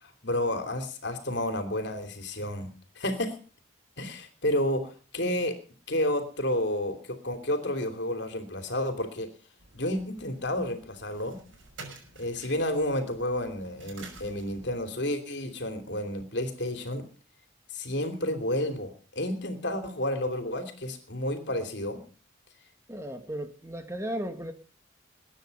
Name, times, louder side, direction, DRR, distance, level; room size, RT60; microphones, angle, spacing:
voice 1, 0.0-2.7 2.9-3.4 4.0-5.6 5.9-9.3 9.7-11.4 12.2-17.1 17.7-22.0, left 1 dB, 60° left, 3.0 m, -31 dB
sound 1, 9.6-14.8, right 3 dB, 85° right, 5.9 m, -50 dB
voice 2, 22.9-24.5, right 1 dB, 15° right, 1.4 m, -35 dB
21.0 x 9.9 x 5.4 m
head